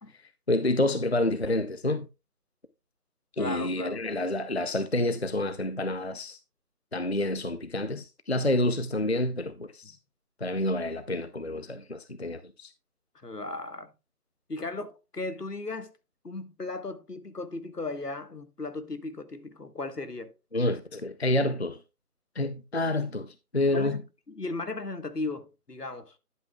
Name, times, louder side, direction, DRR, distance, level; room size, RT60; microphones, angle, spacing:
voice 1, 0.5-2.1 3.4-6.4 6.9-10.0 10.4-12.7 20.5-21.8 22.4-23.3 23.5-24.0, left 1 dB, 45° left, 0.6 m, -28 dB
voice 2, 3.4-4.0 13.1-13.9 14.5-15.9 16.2-20.3 23.7-24.0 24.3-26.1, left 3 dB, 80° left, 1.5 m, -36 dB
11.0 x 8.4 x 2.3 m
figure-of-eight pair, 160°, 46 cm